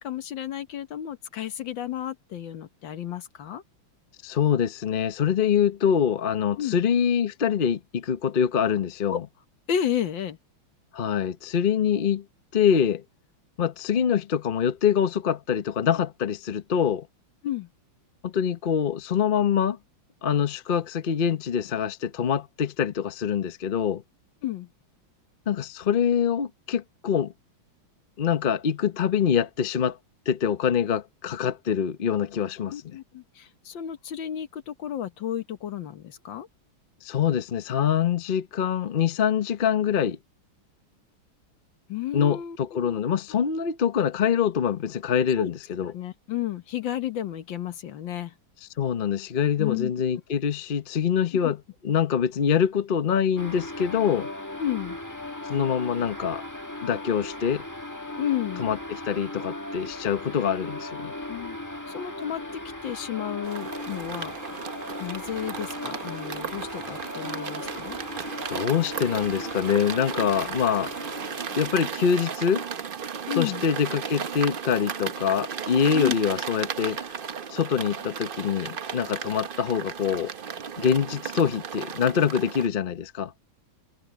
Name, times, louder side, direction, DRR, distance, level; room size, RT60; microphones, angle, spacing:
voice 1, 0.0-3.6 6.6-6.8 9.1-9.2 9.7-10.4 17.4-17.7 24.4-24.7 32.7-36.5 41.9-43.0 43.4-43.7 45.4-45.5 45.8-48.3 49.6-49.9 51.3-51.5 54.6-55.0 58.2-58.6 61.3-61.6 61.9-62.4 62.8-64.4 64.9-68.0 70.5-70.6 73.3-73.6 75.9-76.2, left 10 dB, 75° left, 1.9 m, -32 dB
voice 2, 4.2-9.2 10.9-12.2 12.5-13.0 13.6-17.1 18.2-19.8 20.2-24.0 25.5-27.3 28.2-30.0 30.3-32.7 37.0-40.2 42.1-45.9 48.8-51.6 51.8-54.3 55.4-56.4 56.8-57.6 58.6-61.1 68.5-70.9 71.6-72.7 73.4-77.0 77.5-80.3 80.8-83.3, left 8 dB, 45° left, 0.7 m, -25 dB
sound 1, 53.4-71.7, left 1 dB, 10° left, 1.3 m, -37 dB
sound 2, 63.4-82.7, right 7 dB, 70° right, 0.5 m, -35 dB
omnidirectional pair, 2.1 m